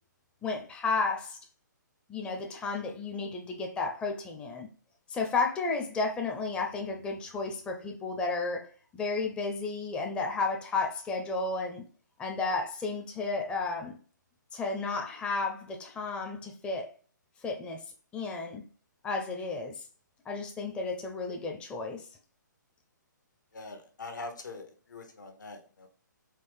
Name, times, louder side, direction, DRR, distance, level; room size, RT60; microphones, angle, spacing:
voice 1, 0.4-1.4 2.1-4.7 5.1-11.8 12.2-14.0 14.5-16.9 17.4-17.8 18.1-18.6 19.0-19.8 20.3-22.1, left 3 dB, 10° left, 0.5 m, -32 dB
voice 2, 23.5-25.9, left 3 dB, 70° left, 1.1 m, -43 dB
4.5 x 3.1 x 3.3 m
figure-of-eight pair, 130°, 10 cm